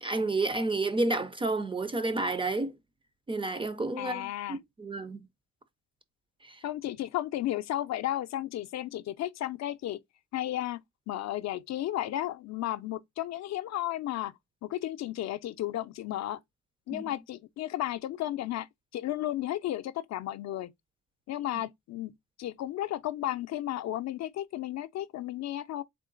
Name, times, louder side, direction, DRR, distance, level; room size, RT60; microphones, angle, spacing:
voice 1, 0.0-2.7 3.3-5.2 6.4-6.6 16.9-17.1, right 2 dB, 15° right, 0.4 m, -30 dB
voice 2, 4.0-4.6 6.6-10.0 10.3-10.8 11.1-14.3 14.6-16.4 16.9-18.7 18.9-20.7 21.3-22.1 22.4-25.8, left 13 dB, 60° left, 0.4 m, -33 dB
3.7 x 3.1 x 3.7 m
cardioid pair, 125°, 30 cm